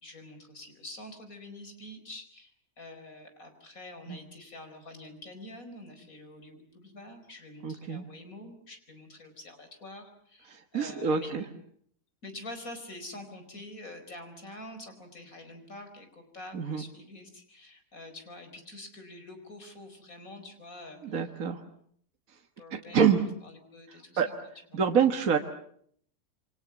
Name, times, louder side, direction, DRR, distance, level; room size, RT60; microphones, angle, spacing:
voice 1, 0.0-11.5 12.2-21.3 22.6-24.2 24.7-24.8, left 1 dB, 60° left, 7 dB, 5.1 m, -46 dB
voice 2, 7.6-8.0 10.5-11.4 16.5-16.8 21.0-21.6 22.7-23.2 24.2-24.3 24.7-25.4, right 7 dB, 60° right, 4 dB, 1.9 m, -26 dB
28.5 x 24.0 x 7.1 m, 0.65 s
omnidirectional pair, 1.7 m